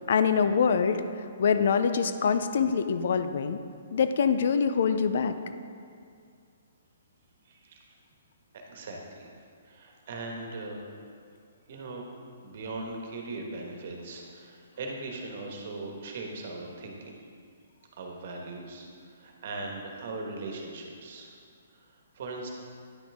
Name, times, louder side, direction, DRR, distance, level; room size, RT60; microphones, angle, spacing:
voice 1, 0.1-1.0 1.4-3.6 3.9-5.3, left 6 dB, 60° left, 10 dB, 0.5 m, -24 dB
voice 2, 7.4-7.9 8.5-9.3 9.6-10.8 11.7-12.0 12.4-17.2 18.0-21.4 21.7-22.5, right 2 dB, 55° right, 1 dB, 1.4 m, -39 dB
10.0 x 6.1 x 3.5 m, 2.2 s
hypercardioid pair, 150°, 0 cm